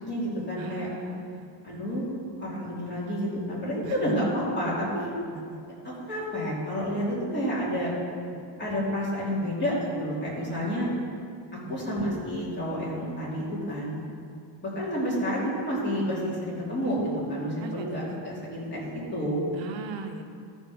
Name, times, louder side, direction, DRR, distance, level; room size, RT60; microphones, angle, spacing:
voice 1, 0.0-0.9 1.6-2.1 2.4-5.1 5.8-7.9 8.6-10.9 11.7-13.9 14.6-19.4, equal, 25° left, -7 dB, 3.0 m, -30 dB
voice 2, 0.6-2.0 3.8-4.1 5.5-5.6 10.5-11.0 11.7-11.9 13.9-14.1 17.6-18.1 19.5-20.2, right 4 dB, 70° right, 5 dB, 0.9 m, -39 dB
13.5 x 5.4 x 6.3 m, 2.4 s
cardioid pair, 175°, 47 cm